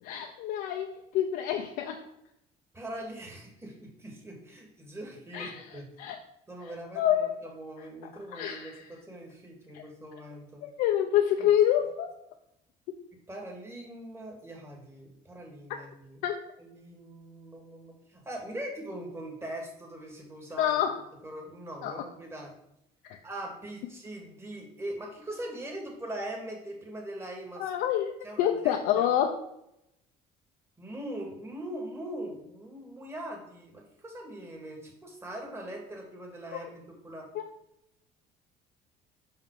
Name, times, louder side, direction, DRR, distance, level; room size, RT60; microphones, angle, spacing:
voice 1, 0.0-2.0 5.3-6.2 6.6-7.4 7.8-7.9 8.3-8.8 9.7-9.8 10.6-12.1 16.2-16.3 20.6-21.0 21.8-22.0 23.1-23.2 27.6-28.1 28.4-29.4 36.5-36.6 37.3-37.4, left 10 dB, 80° left, 2 dB, 0.7 m, -27 dB
voice 2, 2.7-5.9 6.5-7.1 7.4-10.6 11.4-11.5 13.1-16.2 16.6-20.8 21.2-22.5 23.2-27.7 28.2-29.1 30.8-37.3, right 1 dB, 15° right, 0 dB, 2.1 m, -41 dB
5.7 x 5.6 x 4.8 m, 0.80 s
cardioid pair, 110°, 15 cm